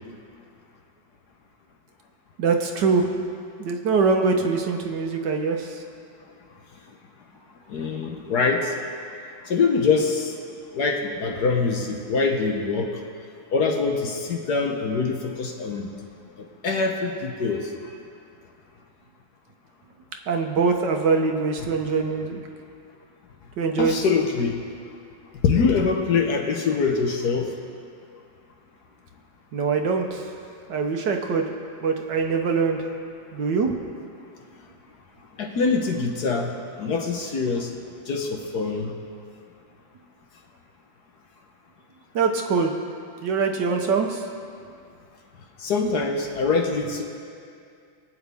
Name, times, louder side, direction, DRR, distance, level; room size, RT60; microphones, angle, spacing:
voice 1, 2.4-3.1 3.6-5.7 20.3-22.4 23.6-23.9 29.5-30.2 30.7-31.5 31.8-32.8 33.3-33.7 42.1-42.7 43.2-44.2, right 4 dB, 65° right, 3 dB, 1.5 m, -23 dB
voice 2, 7.7-8.7 9.5-10.3 10.7-12.9 13.5-15.9 16.6-17.7 21.6-21.7 23.8-24.6 25.4-27.5 35.4-36.5 36.8-37.7 38.1-38.9 45.6-47.0, left 4 dB, 60° left, 2 dB, 1.5 m, -24 dB
24.0 x 8.6 x 3.5 m, 2.4 s
omnidirectional pair, 2.2 m